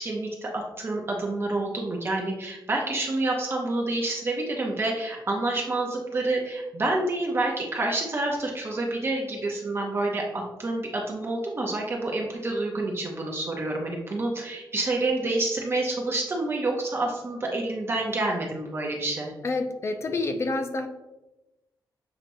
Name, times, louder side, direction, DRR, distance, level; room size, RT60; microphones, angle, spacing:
voice 1, 0.0-19.3, right 2 dB, 30° right, -1 dB, 0.6 m, -28 dB
voice 2, 19.4-20.9, left 3 dB, 35° left, 6 dB, 0.5 m, -28 dB
6.7 x 2.9 x 2.6 m, 1.0 s
wide cardioid pair, 135°, 8 cm